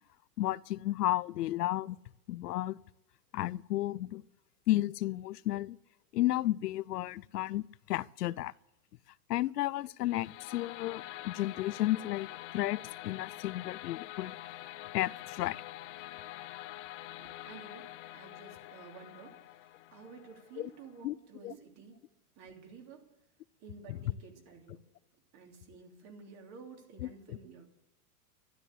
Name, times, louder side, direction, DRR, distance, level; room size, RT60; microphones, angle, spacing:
voice 1, 0.4-2.0 2.3-2.8 3.3-4.2 4.7-5.8 6.1-8.5 9.3-12.3 12.5-14.4 14.9-15.6 20.6-20.7 21.0-21.1 21.4-21.5 23.9-24.0 27.0-27.1, left 15 dB, 90° left, 0.6 m, -32 dB
sound 1, 10.0-21.0, left 15 dB, 50° left, 1.0 m, -46 dB
voice 2, 17.0-22.0 22.4-23.1 23.6-24.9 25.3-27.7, right 5 dB, 35° right, 3.2 m, -52 dB
12.5 x 12.5 x 8.0 m
supercardioid pair, 145°, 46 cm